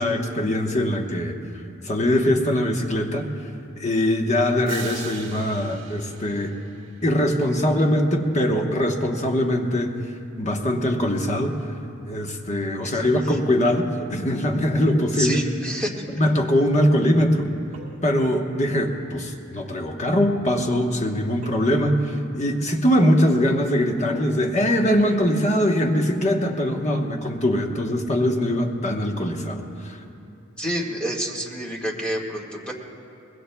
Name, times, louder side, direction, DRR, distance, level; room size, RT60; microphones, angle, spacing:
voice 1, 0.0-1.4 1.8-3.3 3.8-6.5 7.0-10.0 10.4-11.5 12.0-15.4 16.1-17.5 18.0-30.1, equal, 35° left, 2 dB, 1.1 m, -22 dB
sound 1, 4.7-7.5, right 7 dB, 65° right, 1.7 m, -41 dB
voice 2, 12.8-13.3 15.1-15.9 30.6-32.7, right 1 dB, 5° left, -2 dB, 1.7 m, -29 dB
sound 2, 17.7-18.2 21.4-21.9 25.0-25.3, right 2 dB, 35° right, 2.1 m, -44 dB
24.0 x 21.0 x 2.3 m, 2.8 s
head